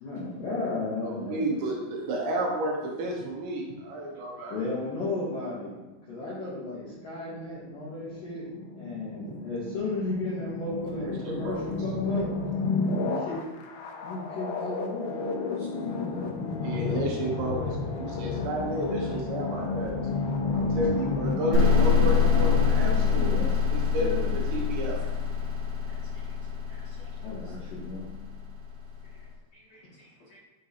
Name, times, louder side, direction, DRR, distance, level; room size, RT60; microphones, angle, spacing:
voice 1, 0.0-1.5 4.5-5.8 6.1-8.5 8.7-12.3 12.9-13.4 14.0-15.2 23.0-23.6 27.2-28.1, left 2 dB, 70° left, -8 dB, 2.1 m, -34 dB
voice 2, 1.0-4.6 11.0-11.7 16.6-20.1 20.5-23.4 23.7-25.0, right 1 dB, 75° right, -1 dB, 2.9 m, -32 dB
sound 1, 6.4-22.7, left 3 dB, 85° left, 2.4 m, -31 dB
sound 2, 21.5-29.1, left 6 dB, 60° right, 2.6 m, -25 dB
voice 3, 22.7-23.5 24.0-24.4 25.9-26.0 26.7-27.4 29.5-30.4, left 1 dB, 45° left, -11 dB, 2.6 m, -40 dB
9.8 x 3.7 x 2.8 m, 1.1 s
omnidirectional pair, 5.5 m